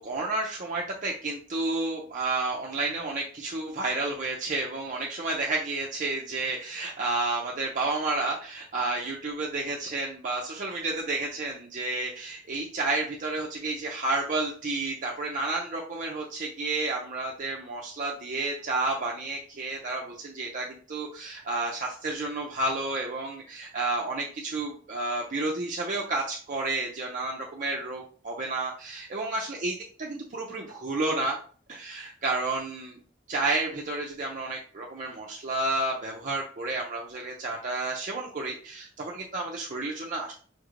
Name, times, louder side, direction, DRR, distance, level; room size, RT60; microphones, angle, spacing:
voice 1, 0.0-29.7 30.0-31.4 31.7-33.0 33.3-40.3, right 2 dB, 45° right, -2 dB, 0.6 m, -31 dB
5.1 x 3.1 x 2.5 m, 0.43 s
head